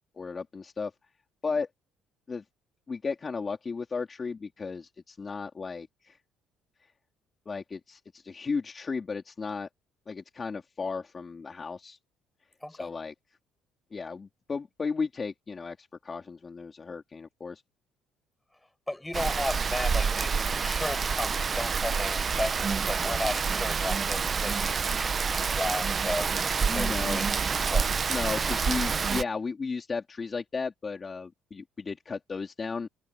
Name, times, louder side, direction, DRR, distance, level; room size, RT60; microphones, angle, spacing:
voice 1, 0.1-0.9 1.4-1.7 2.3-2.4 2.9-6.2 7.5-9.7 10.1-12.0 12.7-13.1 13.9-17.6 26.7-27.2 28.1-32.9, left 4 dB, 30° left, 3.5 m, -34 dB
voice 2, 18.9-26.4 26.7-28.1, left 1 dB, 10° left, 6.7 m, -35 dB
Rain, 19.1-29.2, right 5 dB, 35° right, 0.8 m, -28 dB
cardioid pair, 100°, 0 cm